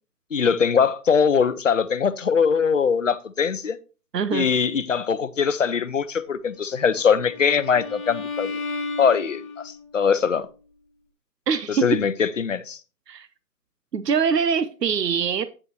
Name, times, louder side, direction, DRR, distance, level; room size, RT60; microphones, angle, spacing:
voice 1, 0.3-3.8 4.3-8.5 9.0-10.5 11.7-12.8, left 6 dB, 50° left, 0.7 m, -22 dB
voice 2, 4.1-4.5 11.5-11.8 13.1-13.3 13.9-15.5, right 6 dB, 85° right, 0.9 m, -23 dB
Bowed string instrument, 6.8-9.9, left 3 dB, 30° left, 1.5 m, -34 dB
8.4 x 7.8 x 3.1 m
hypercardioid pair, 175°, 48 cm